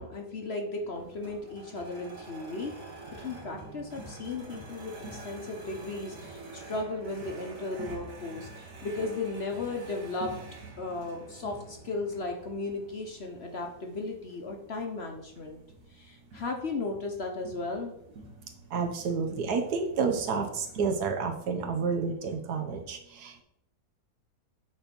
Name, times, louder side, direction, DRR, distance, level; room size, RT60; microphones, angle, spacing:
voice 1, 0.0-2.8 3.1-10.4 10.8-15.6 15.9-17.9, left 3 dB, 45° left, 3 dB, 1.0 m, -35 dB
sound 1, 0.9-20.8, right 2 dB, 55° right, 1.9 m, -47 dB
voice 2, 18.7-23.4, right 5 dB, 75° right, 4 dB, 1.6 m, -30 dB
7.6 x 4.4 x 5.3 m, 0.73 s
omnidirectional pair, 1.7 m